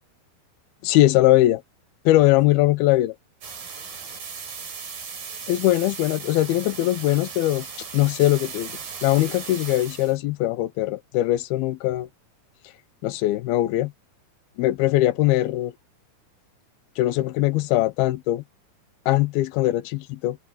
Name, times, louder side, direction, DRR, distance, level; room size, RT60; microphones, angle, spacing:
voice 1, 0.8-1.6 2.1-3.2 5.5-7.7 7.9-8.7 9.0-12.1 13.0-13.9 14.6-15.7 17.0-18.4 19.1-20.4, left 16 dB, 85° left, 2.7 m, -21 dB
sound 1, 3.4-10.2, right 6 dB, 65° right, 6.3 m, -37 dB
voice 2, 3.7-6.5 15.1-15.4, right 6 dB, 85° right, 8.6 m, -60 dB
omnidirectional pair, 4.4 m